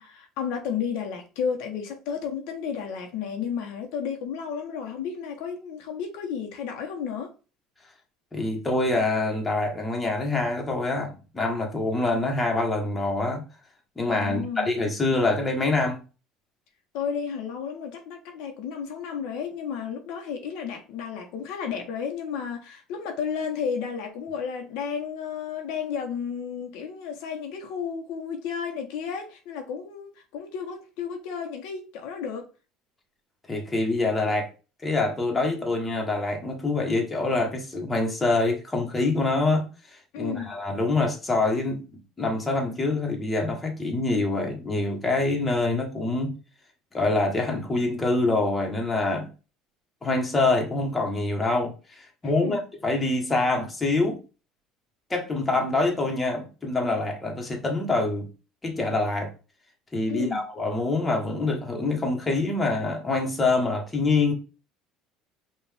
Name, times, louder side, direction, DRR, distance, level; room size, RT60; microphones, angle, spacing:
voice 1, 0.0-7.3 14.2-14.7 16.9-32.5 40.1-40.5 52.2-52.6 60.1-60.4, left 7 dB, 75° left, 1.0 m, -32 dB
voice 2, 8.3-13.4 14.0-16.0 33.5-34.5 34.8-39.7 40.2-41.8 42.2-46.4 46.9-49.3 50.0-54.2 55.1-58.3 58.6-59.3 59.9-64.3, left 2 dB, 15° left, 1.2 m, -25 dB
5.4 x 2.5 x 3.4 m
cardioid pair, 125°, 0 cm